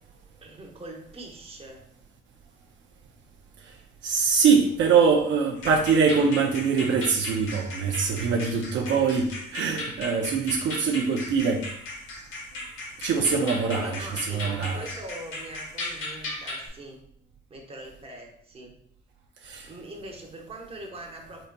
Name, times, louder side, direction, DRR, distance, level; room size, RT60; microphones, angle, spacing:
voice 1, 0.4-1.8 13.8-17.0 17.5-18.7 19.6-21.5, right 1 dB, 30° right, 0 dB, 0.9 m, -42 dB
voice 2, 4.0-11.7 13.0-14.9 19.4-19.7, right 5 dB, 70° right, 1 dB, 0.5 m, -23 dB
sound 1, 5.6-16.7, left 2 dB, 85° left, 1.2 m, -37 dB
3.9 x 3.8 x 2.2 m, 0.68 s
cardioid pair, 90°, 20 cm